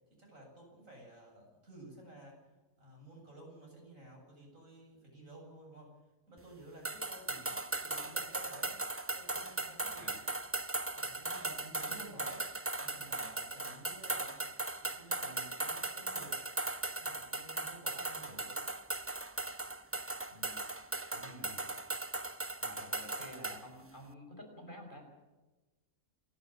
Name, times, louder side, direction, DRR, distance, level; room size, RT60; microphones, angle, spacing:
voice 1, 0.1-2.5 2.8-6.0 6.3-8.8 9.1-10.1 10.9-12.5 12.8-14.4 14.8-16.4 17.0-18.4, right 1 dB, 70° right, 0 dB, 8.2 m, -53 dB
sound 1, 6.8-23.6, right 2 dB, 15° right, 0.6 m, -38 dB
voice 2, 18.2-18.6 20.3-20.6 21.1-21.7 22.6-25.1, equal, 35° left, 2 dB, 5.6 m, -51 dB
28.0 x 12.5 x 8.6 m, 1.2 s
omnidirectional pair, 1.4 m